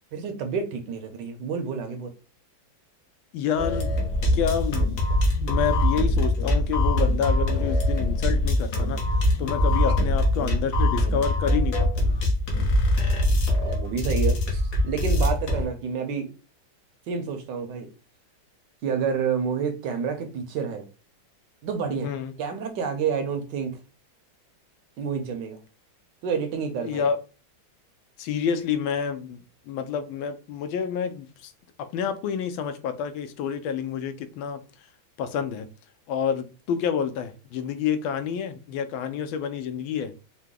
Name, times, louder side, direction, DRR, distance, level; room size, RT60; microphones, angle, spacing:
voice 1, 0.1-2.1 13.5-16.3 17.1-17.9 18.8-20.8 21.6-22.1 22.4-23.8 25.0-25.6 26.2-27.1, right 6 dB, 70° right, 1.2 m, -29 dB
voice 2, 3.3-4.0 4.3-5.0 5.4-9.0 9.4-12.0 22.0-22.3 26.8-27.2 28.2-29.4 29.7-31.5 31.8-34.6 35.2-35.7 36.1-40.1, left 7 dB, 80° left, 1.3 m, -28 dB
sound 1, 3.6-15.7, left 1 dB, 55° left, 1.5 m, -23 dB
4.7 x 2.2 x 3.6 m
omnidirectional pair, 2.2 m